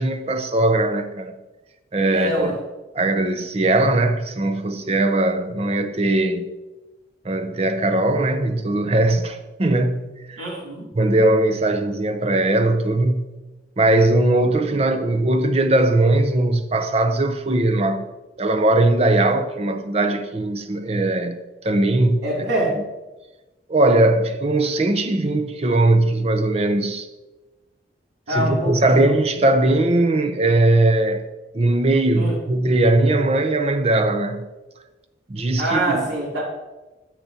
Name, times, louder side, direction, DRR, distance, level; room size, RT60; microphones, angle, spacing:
voice 1, 0.0-1.4 1.9-2.6 2.9-6.5 7.2-10.5 10.9-13.2 13.8-18.0 18.4-21.4 21.6-22.2 23.7-27.1 28.3-31.3 31.5-34.5 35.3-36.1, right 2 dB, 35° right, 0.5 m, -19 dB
voice 2, 2.1-2.5 10.4-10.9 22.2-22.7 28.3-29.0 32.2-32.4 35.6-36.4, right 1 dB, 85° right, 2.7 m, -24 dB
10.0 x 7.5 x 2.8 m
head